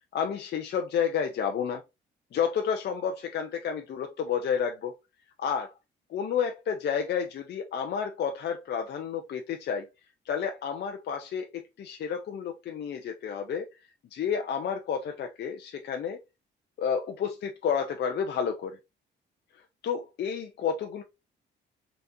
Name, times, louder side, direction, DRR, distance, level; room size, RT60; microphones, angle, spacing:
voice 1, 0.1-1.8 2.3-4.9 5.4-5.7 6.1-9.9 10.3-11.5 11.8-13.7 14.1-16.2 16.8-18.8 19.8-21.0, left 7 dB, 55° left, 0.6 m, -30 dB
4.0 x 3.5 x 2.6 m
cardioid pair, 90°, 20 cm